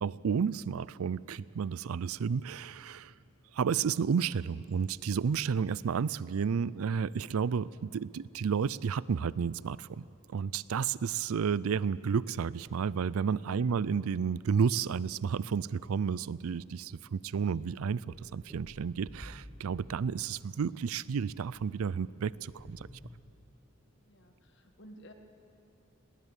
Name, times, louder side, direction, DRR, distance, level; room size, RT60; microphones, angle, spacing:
voice 1, 0.0-3.1 3.5-10.0 10.3-22.9, right 6 dB, 85° right, 21 dB, 0.4 m, -31 dB
voice 2, 13.4-13.7 24.0-25.1, equal, 55° left, 5 dB, 1.8 m, -54 dB
sound 1, 17.0-17.1 17.6-23.2, equal, 10° left, 1.2 m, -52 dB
20.0 x 18.0 x 8.3 m, 3.0 s
head